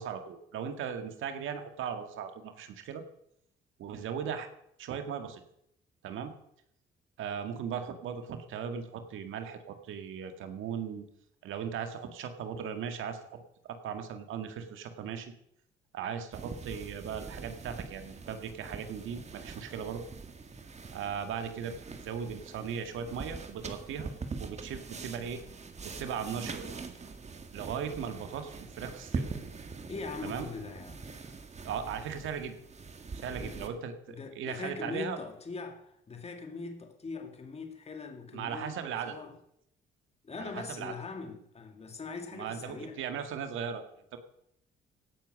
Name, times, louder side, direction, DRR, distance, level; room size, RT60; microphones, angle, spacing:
voice 1, 0.0-3.0 3.8-4.5 4.8-5.4 6.0-6.3 7.2-11.0 11.4-15.3 15.9-20.0 20.9-24.1 24.4-25.4 25.8-26.7 27.5-29.3 30.2-30.5 31.6-32.6 33.1-35.2 38.3-39.1 40.4-40.9 42.3-44.2, right 7 dB, 80° right, 1.9 m, -38 dB
sound 1, 16.3-33.7, right 4 dB, 35° right, 1.7 m, -43 dB
voice 2, 29.9-31.1 33.3-33.8 34.1-38.8 39.1-39.4 40.2-43.0, left 4 dB, 30° left, 2.3 m, -41 dB
17.0 x 9.3 x 6.4 m
cardioid pair, 90°, 20 cm